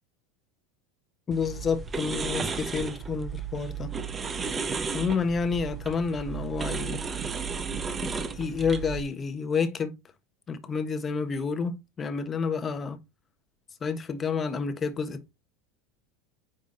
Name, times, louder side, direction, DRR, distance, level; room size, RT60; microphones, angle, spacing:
voice 1, 1.3-3.9 4.9-7.0 8.0-10.0 10.5-13.0 13.8-15.3, left 5 dB, 25° left, 1.3 m, -29 dB
sound 1, 1.3-9.0, right 5 dB, 25° right, 1.1 m, -34 dB
9.7 x 3.6 x 4.0 m
supercardioid pair, 105°, 0 cm